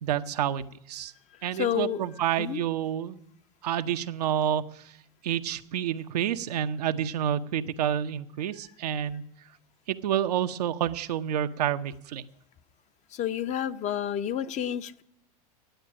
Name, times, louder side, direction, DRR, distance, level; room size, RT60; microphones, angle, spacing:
voice 1, 0.0-1.1 1.4-3.2 3.6-4.8 5.2-9.2 9.9-12.2, right 10 dB, 85° right, 0.7 m, -29 dB
voice 2, 1.4-2.0 2.4-2.6 13.1-15.0, left 10 dB, 35° left, 0.6 m, -30 dB
10.5 x 8.4 x 9.9 m
hypercardioid pair, 105°, 20 cm